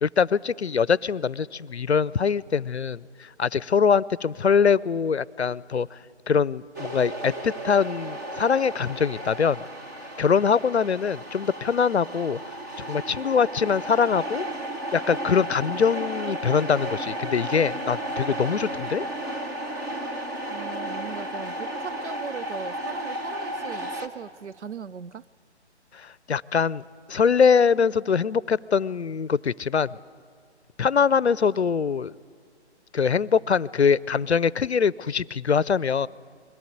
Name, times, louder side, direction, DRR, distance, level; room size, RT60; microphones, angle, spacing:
voice 1, 0.0-6.0 6.3-9.6 10.2-12.4 12.8-14.5 14.9-19.0 25.9-29.9 30.8-32.1 32.9-36.1, left 6 dB, 70° left, 22 dB, 0.6 m, -23 dB
sound 1, 6.7-24.1, right 1 dB, 15° right, 0.8 m, -33 dB
voice 2, 20.5-25.2, right 6 dB, 80° right, 16 dB, 0.6 m, -38 dB
22.0 x 17.0 x 9.4 m, 2.1 s
figure-of-eight pair, 145°, 34 cm